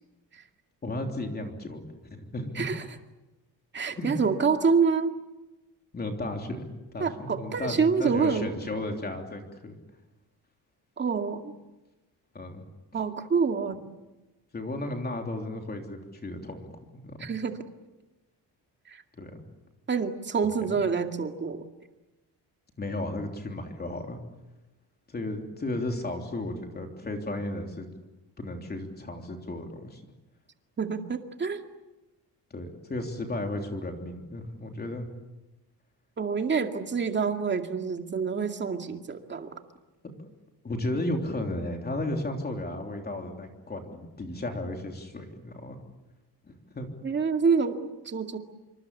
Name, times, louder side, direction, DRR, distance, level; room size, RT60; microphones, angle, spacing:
voice 1, 0.8-1.8 2.1-2.7 3.9-4.2 5.9-9.8 12.3-12.6 14.5-17.3 19.2-19.4 20.7-20.8 22.8-24.2 25.1-27.9 28.4-30.0 32.5-35.1 40.0-40.3 40.6-45.8 46.4-46.9, left 1 dB, 25° left, 3 dB, 3.3 m, -34 dB
voice 2, 3.7-5.1 7.0-8.5 11.0-11.5 12.9-13.8 17.2-17.6 18.9-19.0 19.9-21.6 30.8-31.6 36.2-39.5 47.0-48.4, right 5 dB, 25° right, 5 dB, 2.2 m, -27 dB
27.5 x 24.5 x 8.5 m, 1.1 s
cardioid pair, 160°, 41 cm